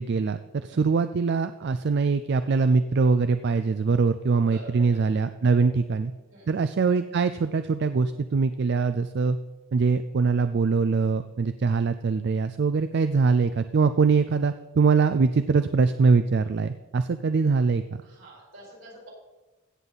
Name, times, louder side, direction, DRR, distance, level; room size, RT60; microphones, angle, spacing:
voice 1, 0.0-6.1 6.5-9.4 9.7-18.0, right 4 dB, 55° right, 10 dB, 0.4 m, -23 dB
voice 2, 4.5-5.0 5.5-5.7 6.3-6.5 18.0-19.1, right 1 dB, 80° right, -3 dB, 4.5 m, -47 dB
16.5 x 7.4 x 4.0 m, 1.1 s
head